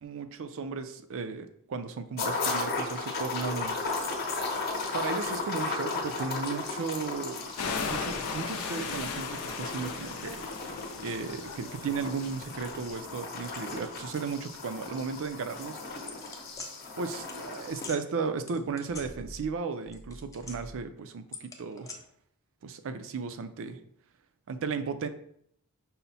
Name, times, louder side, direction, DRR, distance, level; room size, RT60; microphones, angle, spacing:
voice 1, 0.0-4.1 4.9-7.4 7.9-10.4 11.0-16.2 17.0-22.0 22.6-23.8 24.5-25.1, right 5 dB, 60° right, 9 dB, 0.4 m, -35 dB
sound 1, 2.2-17.9, left 3 dB, 45° left, 0.8 m, -36 dB
sound 2, 7.6-13.0, left 5 dB, 85° left, 0.5 m, -37 dB
sound 3, 16.1-16.7 17.3-17.4 17.8-18.0 18.5-19.6 19.9-20.8 21.3-22.0, left 3 dB, 15° left, 0.5 m, -43 dB
5.6 x 2.1 x 4.0 m, 0.68 s
head